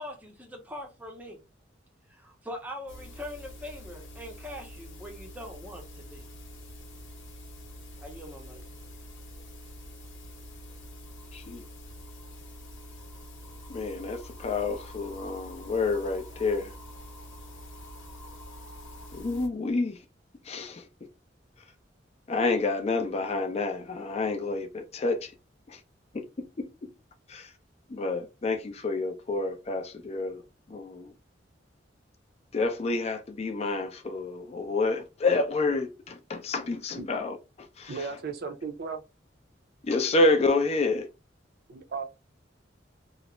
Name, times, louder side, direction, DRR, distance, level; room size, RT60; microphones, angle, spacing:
voice 1, 0.0-1.4 2.1-6.3 8.0-8.6, left 1 dB, 10° right, 0.6 m, -42 dB
sound 1, 2.9-19.5, left 1 dB, 75° left, 0.9 m, -46 dB
voice 2, 11.3-11.6 13.7-16.7 19.1-20.0 20.4-20.9 22.3-25.3 25.7-25.8 26.1-26.9 27.3-27.5 27.9-30.4 30.7-31.1 32.5-38.1 39.8-41.1, left 3 dB, 35° left, 0.4 m, -29 dB
voice 3, 37.9-39.0 41.7-42.0, right 5 dB, 60° right, 0.5 m, -35 dB
2.3 x 2.0 x 2.9 m
head